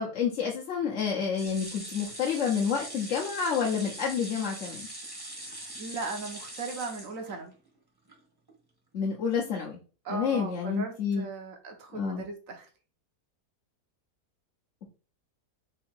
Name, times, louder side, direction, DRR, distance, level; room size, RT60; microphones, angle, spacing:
voice 1, 0.0-4.9 8.9-9.8 10.1-11.3 11.9-12.2, left 6 dB, 60° left, -3 dB, 1.0 m, -29 dB
sound 1, 1.4-7.7 8.1-8.2 8.5-8.6, right 1 dB, 15° right, 0.9 m, -42 dB
voice 2, 5.4-7.5 10.0-12.7, right 4 dB, 60° right, 4 dB, 1.2 m, -38 dB
3.8 x 2.7 x 4.3 m, 0.36 s
omnidirectional pair, 1.7 m